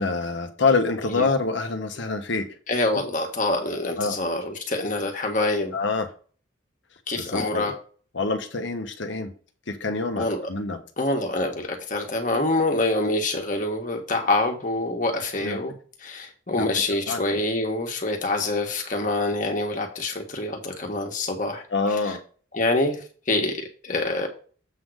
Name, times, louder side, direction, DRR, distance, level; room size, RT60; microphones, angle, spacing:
voice 1, 0.0-2.5 4.0-4.2 5.7-6.1 7.2-7.7 8.1-9.3 9.7-10.8 15.4-15.6 16.6-16.7 17.1-17.2 21.7-22.2, left 3 dB, 70° left, 6 dB, 1.1 m, -26 dB
voice 2, 2.7-5.7 7.1-7.7 10.2-10.5 11.0-15.7 16.0-21.6 22.5-23.0 23.3-23.5 23.8-24.3, left 2 dB, 40° left, 3 dB, 1.6 m, -25 dB
7.7 x 3.8 x 6.3 m, 0.41 s
head